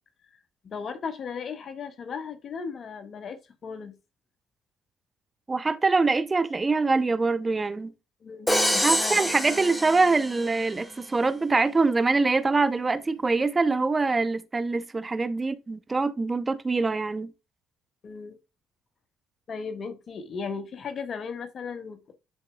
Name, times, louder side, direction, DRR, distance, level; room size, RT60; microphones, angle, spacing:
voice 1, 0.6-3.4 3.6-3.9 8.2-9.3 18.0-18.3 19.5-22.0, left 5 dB, 50° left, 1.4 m, -36 dB
voice 2, 5.5-7.9 8.7-17.3, right 3 dB, 25° right, 0.6 m, -24 dB
Crash cymbal, 8.5-10.7, equal, 5° left, 1.5 m, -26 dB
11.0 x 4.4 x 2.2 m
supercardioid pair, 75°, 0 cm